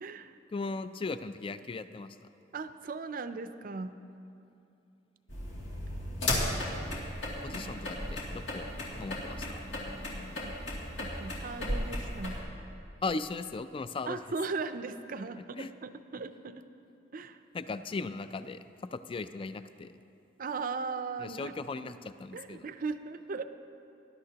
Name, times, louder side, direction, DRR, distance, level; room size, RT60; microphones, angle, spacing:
voice 1, 0.0-0.4 2.5-4.0 7.5-7.7 10.4-10.6 11.0-12.4 14.1-16.6 17.1-17.4 20.4-21.5 21.8-21.9 22.3-23.4, right 4 dB, 50° right, 10 dB, 0.5 m, -38 dB
voice 2, 0.5-2.2 7.4-8.7 9.0-9.6 13.0-14.2 15.6-15.7 17.5-19.9 21.2-22.7, left 3 dB, 30° left, 12 dB, 0.3 m, -37 dB
sound 1, 5.3-12.4, left 1 dB, 85° left, 2.5 m, -35 dB
19.0 x 11.5 x 2.9 m, 2.7 s
head